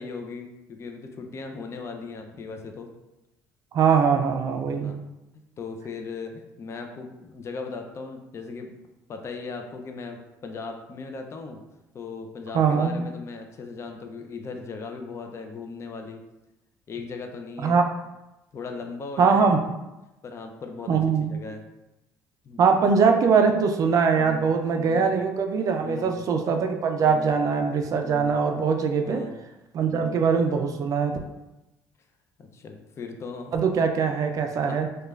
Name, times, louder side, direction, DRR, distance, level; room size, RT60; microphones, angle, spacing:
voice 1, 0.0-2.9 4.8-5.0 5.6-8.7 9.1-11.6 11.9-16.2 16.9-17.8 18.5-19.5 20.2-21.0 21.3-21.6 22.4-22.6 23.0-23.1 24.1-24.4 24.7-25.1 25.8-26.1 27.0-27.3 28.0-28.3 28.9-29.3 29.9-30.2 32.4-33.6 34.4-35.1, left 4 dB, 40° left, 4 dB, 0.4 m, -38 dB
voice 2, 3.7-4.9 12.5-13.0 17.6-17.8 19.2-19.6 20.9-21.4 22.6-29.2 29.7-31.2 33.5-34.9, right 5 dB, 50° right, 5 dB, 0.3 m, -22 dB
3.0 x 2.2 x 2.3 m, 0.95 s
supercardioid pair, 90°, 8 cm